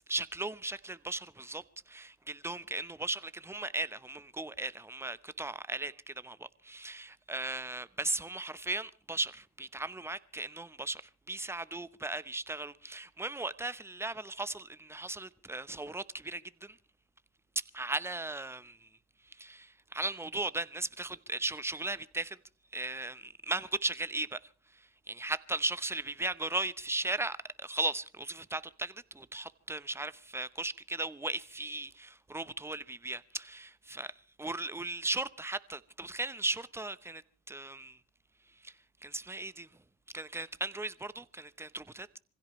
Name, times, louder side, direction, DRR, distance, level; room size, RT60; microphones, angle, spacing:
voice 1, 0.1-16.8 17.5-18.9 19.2-22.4 22.7-37.2 37.5-38.0 38.6-38.7 39.0-39.7 40.1-42.2, right 2 dB, 10° right, 0.8 m, -37 dB
26.0 x 16.0 x 3.1 m
cardioid pair, 90°, 30 cm